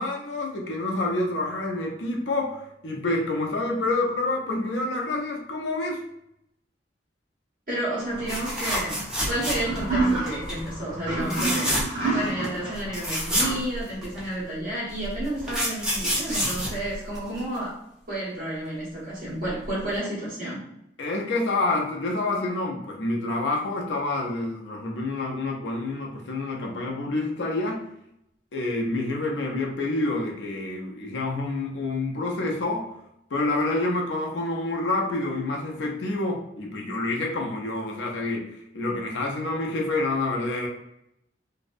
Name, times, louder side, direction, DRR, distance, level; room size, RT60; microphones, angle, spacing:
voice 1, 0.0-6.0 21.0-27.9 28.5-32.9 33.3-40.7, left 2 dB, 80° left, 0 dB, 0.5 m, -28 dB
voice 2, 7.7-11.7 12.1-17.8 18.1-20.6, right 1 dB, 50° right, -7 dB, 1.2 m, -31 dB
sound 1, 8.1-13.5, right 2 dB, 30° right, 1.2 m, -30 dB
sound 2, 8.3-9.9 10.2-10.6 11.2-12.1 12.4-12.5 12.7-14.2 15.0-17.6 19.5-19.6 19.9-20.0, equal, 5° right, 0.5 m, -28 dB
2.6 x 2.0 x 2.5 m, 0.79 s
head